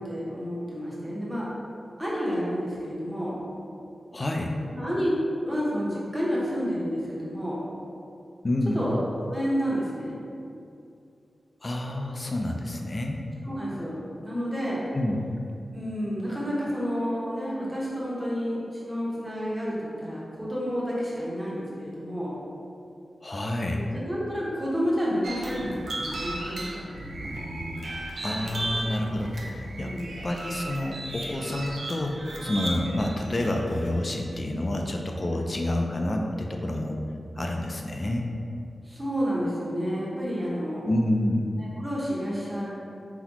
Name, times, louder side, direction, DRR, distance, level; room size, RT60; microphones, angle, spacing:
voice 1, 0.0-1.5 2.0-3.4 4.7-5.1 5.4-7.6 8.7-9.0 9.3-10.2 13.4-14.8 15.7-22.4 23.7-27.3 29.8-30.2 35.3-35.4 38.8-40.8 41.8-42.7, equal, 10° right, -7 dB, 1.0 m, -30 dB
voice 2, 4.1-4.5 8.4-8.8 11.6-13.2 14.9-15.2 23.2-23.8 28.2-30.0 30.2-37.0 37.4-38.3 40.9-41.6, left 1 dB, 30° left, 1 dB, 0.4 m, -28 dB
sound 1, 25.2-34.1, right 1 dB, 60° right, 0.6 m, -35 dB
4.3 x 4.0 x 2.9 m, 2.5 s
wide cardioid pair, 140°, 0 cm